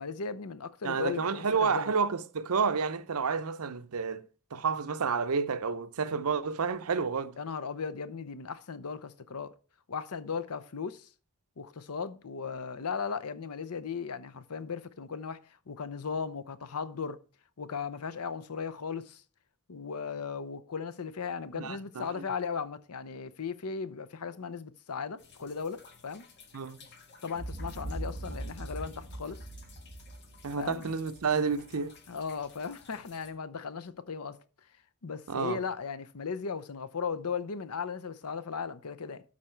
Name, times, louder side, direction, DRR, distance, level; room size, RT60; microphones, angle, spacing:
voice 1, 0.0-1.9 7.4-9.5 9.9-11.1 11.6-17.2 17.6-19.2 19.7-26.2 27.2-29.5 30.6-30.9 32.1-34.4 35.0-39.2, left 5 dB, 85° left, 0.7 m, -37 dB
voice 2, 0.8-4.3 4.5-7.4 21.5-22.2 26.5-26.8 30.4-31.9 35.3-35.6, right 5 dB, 75° right, 0.7 m, -30 dB
sound 1, 25.2-33.3, left 4 dB, 50° left, 1.5 m, -56 dB
Boom, 27.3-31.6, right 1 dB, 45° right, 2.0 m, -41 dB
12.5 x 4.2 x 4.5 m
head